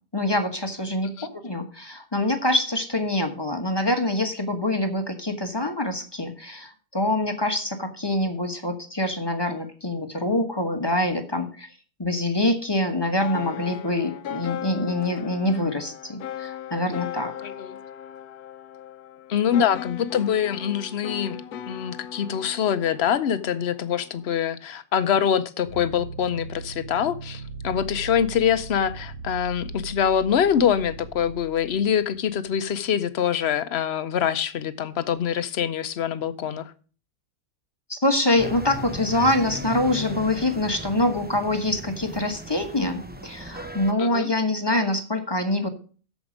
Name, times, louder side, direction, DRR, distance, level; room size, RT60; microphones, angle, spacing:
voice 1, 0.1-1.1 1.4-11.7 12.0-17.3 37.9-45.7, left 1 dB, 20° left, 6 dB, 1.1 m, -25 dB
sound 1, 13.2-24.3, left 10 dB, 85° left, 1.2 m, -38 dB
voice 2, 17.4-17.8 19.3-21.4 21.7-36.7 44.0-44.3, left 8 dB, 55° left, 13 dB, 0.9 m, -24 dB
sound 2, 25.6-32.8, right 3 dB, 50° right, 2.6 m, -39 dB
sound 3, 38.4-43.9, right 1 dB, 15° right, 0.4 m, -37 dB
13.0 x 5.3 x 5.0 m, 0.39 s
omnidirectional pair, 1.5 m